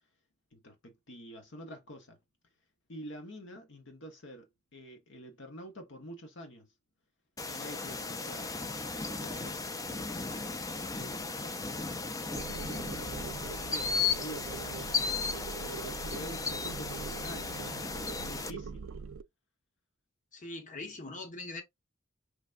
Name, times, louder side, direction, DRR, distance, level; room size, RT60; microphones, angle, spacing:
voice 1, 0.5-2.2 2.9-6.7 7.5-8.5 9.1-9.8 11.0-11.7 13.4-15.0 15.6-18.8, equal, 65° left, 1.0 m, -47 dB
sound 1, 7.4-18.5, left 4 dB, 15° left, 0.4 m, -35 dB
sound 2, 12.3-19.2, right 5 dB, 85° right, 0.4 m, -43 dB
voice 2, 20.3-21.6, left 2 dB, 40° left, 1.1 m, -41 dB
5.0 x 3.3 x 2.5 m
head